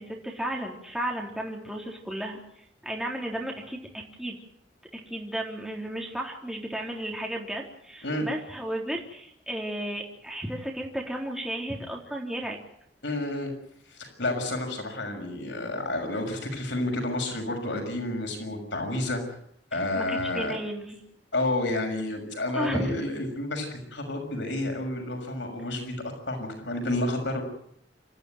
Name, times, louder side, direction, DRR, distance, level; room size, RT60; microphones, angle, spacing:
voice 1, 0.0-4.4 4.9-12.6 19.9-21.0 22.5-22.9, right 1 dB, 5° right, -1 dB, 3.8 m, -34 dB
voice 2, 13.0-13.5 13.9-19.2 19.7-20.6 21.3-25.9 26.3-27.4, left 1 dB, 85° left, 3 dB, 6.4 m, -30 dB
28.0 x 14.0 x 9.3 m, 0.70 s
head